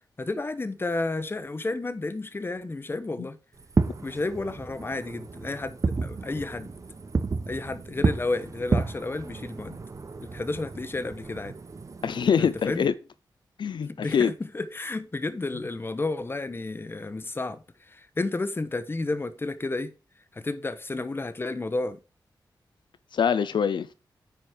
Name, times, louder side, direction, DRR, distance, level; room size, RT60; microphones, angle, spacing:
voice 1, 0.2-3.4 4.0-6.7 7.5-9.8 10.2-11.5 12.4-12.9 13.9-19.9 20.3-22.0, left 2 dB, 30° left, 1.0 m, -31 dB
Fireworks, 3.6-12.9, right 4 dB, 40° right, 0.9 m, -31 dB
voice 2, 12.0-12.9 13.6-14.3 23.1-23.9, left 7 dB, 80° left, 0.6 m, -24 dB
9.2 x 5.2 x 6.4 m
wide cardioid pair, 110°, 8 cm